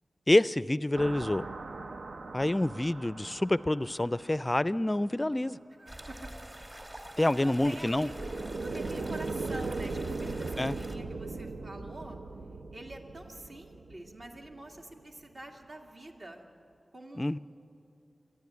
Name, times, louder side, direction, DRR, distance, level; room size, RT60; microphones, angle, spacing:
voice 1, 0.3-1.5 2.3-5.6 7.2-8.1 10.6-10.7 17.2-17.4, left 1 dB, 25° left, 17 dB, 0.4 m, -27 dB
sound 1, 0.9-4.9 7.9-15.0, right 3 dB, 85° right, 0.6 m, -39 dB
voice 2, 5.8-6.3 7.2-8.1 8.6-12.2 12.7-16.4 16.9-17.3, right 1 dB, 60° right, 0 dB, 2.4 m, -46 dB
sound 2, 5.9-11.0, right 1 dB, 35° right, 2.3 m, -45 dB
26.5 x 11.0 x 9.6 m, 2.6 s
wide cardioid pair, 60°, 0 cm